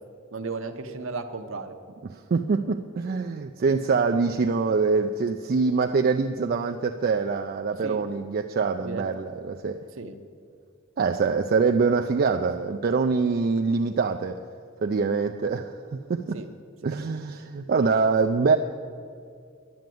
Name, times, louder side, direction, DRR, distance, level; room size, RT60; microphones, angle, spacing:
voice 1, 0.3-1.8 7.8-8.0 8.8-9.0 10.0-10.2 16.3-16.5, right 4 dB, 65° right, 7 dB, 0.9 m, -34 dB
voice 2, 2.0-9.8 11.0-14.4 14.8-16.4 16.8-18.6, right 4 dB, 45° right, 4 dB, 0.4 m, -24 dB
10.5 x 9.4 x 7.7 m, 2.3 s
head